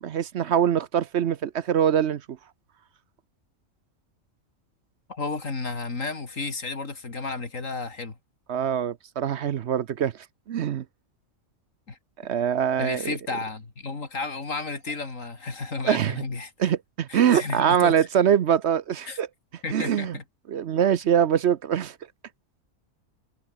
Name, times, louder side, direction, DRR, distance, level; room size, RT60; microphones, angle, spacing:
voice 1, 0.0-2.4 8.5-10.8 12.2-13.2 15.8-16.2 16.6-19.3 19.7-20.2 20.5-22.0, right 9 dB, 60° right, 0.9 m, -23 dB
voice 2, 5.1-8.2 11.9-12.0 12.8-16.7 17.1-18.0 19.1-19.2 19.6-20.2, left 3 dB, 75° left, 3.4 m, -32 dB
omnidirectional pair, 1.4 m